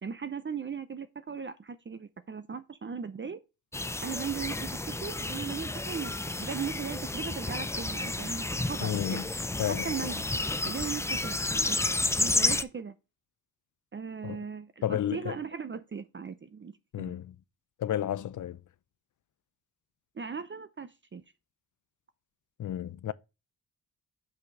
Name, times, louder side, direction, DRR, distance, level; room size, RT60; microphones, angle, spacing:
voice 1, 0.0-3.4 4.0-4.7 5.0-9.2 9.7-10.3 10.6-11.4 11.7-11.8 12.1-12.9 13.9-17.2 20.2-21.2, right 6 dB, 35° right, 0.7 m, -38 dB
sound 1, 3.7-12.6, left 2 dB, 10° left, 0.5 m, -31 dB
voice 2, 8.8-9.3 9.6-10.1 14.2-14.4 14.8-15.4 16.9-17.4 17.8-18.6 22.6-23.1, left 11 dB, 55° left, 0.6 m, -32 dB
6.0 x 5.0 x 6.0 m
cardioid pair, 90°, 36 cm